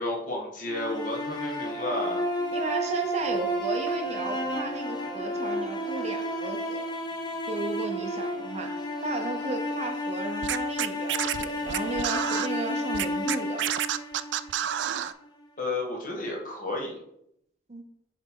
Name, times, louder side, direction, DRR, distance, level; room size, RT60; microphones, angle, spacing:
voice 1, 0.0-2.2 15.6-17.0, left 2 dB, 45° left, -1 dB, 1.5 m, -32 dB
sound 1, 0.7-14.8, equal, 25° left, 0.7 m, -31 dB
voice 2, 2.5-6.9 7.5-13.7 17.7-17.8, right 2 dB, 35° right, 5 dB, 0.7 m, -35 dB
Scratching (performance technique), 10.4-12.5 12.9-15.1, right 10 dB, 75° right, 0.3 m, -29 dB
6.9 x 4.3 x 3.7 m, 0.77 s
head